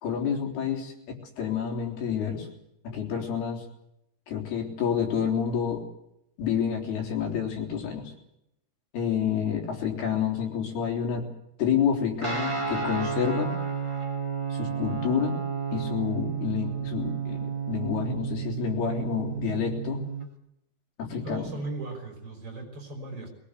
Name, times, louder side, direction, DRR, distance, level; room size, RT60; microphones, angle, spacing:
voice 1, 0.0-2.5 2.8-3.6 4.3-5.8 6.4-8.1 8.9-11.3 11.6-13.5 14.5-15.4 15.7-20.0 21.0-21.5, left 7 dB, 90° left, 2 dB, 5.7 m, -29 dB
Guitar, 12.2-20.3, right 6 dB, 10° right, 2.1 m, -31 dB
voice 2, 21.1-23.3, right 2 dB, 35° right, 3 dB, 6.8 m, -37 dB
22.0 x 20.0 x 8.4 m, 0.80 s
omnidirectional pair, 4.4 m